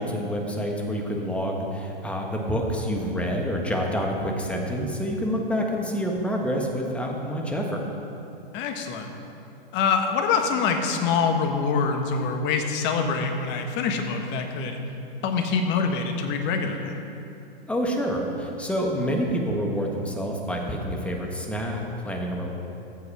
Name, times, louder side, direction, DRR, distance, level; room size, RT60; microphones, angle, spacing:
voice 1, 0.0-7.8 17.7-22.5, equal, 5° left, 0 dB, 1.5 m, -27 dB
voice 2, 8.5-9.1 9.7-14.8 15.2-17.0, left 5 dB, 40° left, 4 dB, 1.4 m, -25 dB
14.5 x 8.3 x 4.9 m, 2.8 s
hypercardioid pair, 115°, 29 cm